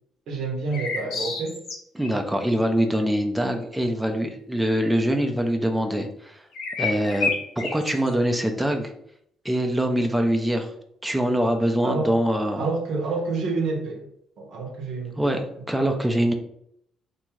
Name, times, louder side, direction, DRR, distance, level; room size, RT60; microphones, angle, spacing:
voice 1, 0.3-1.6 11.8-12.1 12.6-14.1 14.4-15.5 15.8-15.9, right 3 dB, 75° right, 2 dB, 0.7 m, -28 dB
sound 1, 0.7-2.1 6.5-8.1, left 4 dB, 75° left, 0.6 m, -29 dB
voice 2, 2.0-6.4 6.8-8.9 9.4-10.7 11.0-12.7 15.2-16.3, equal, 5° right, 4 dB, 0.4 m, -24 dB
2.6 x 2.3 x 3.0 m, 0.73 s
supercardioid pair, 80°, 0 cm